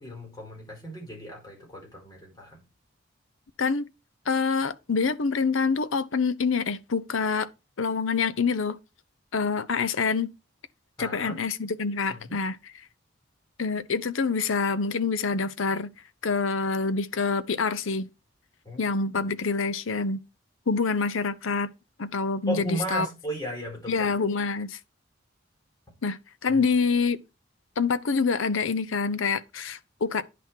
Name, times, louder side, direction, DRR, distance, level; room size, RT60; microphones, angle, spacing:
voice 1, 0.0-2.6 11.0-11.4 12.1-12.4 18.6-18.8 19.1-19.2 22.5-24.0 26.5-26.6, equal, 20° left, 4.4 m, -36 dB
voice 2, 4.3-7.5 7.8-8.8 9.3-10.3 11.0-12.6 13.6-15.9 16.2-18.1 18.8-20.2 20.7-21.7 22.0-23.1 23.9-24.8 26.0-27.2 27.8-30.2, left 4 dB, 80° left, 0.7 m, -26 dB
10.0 x 5.9 x 4.6 m
head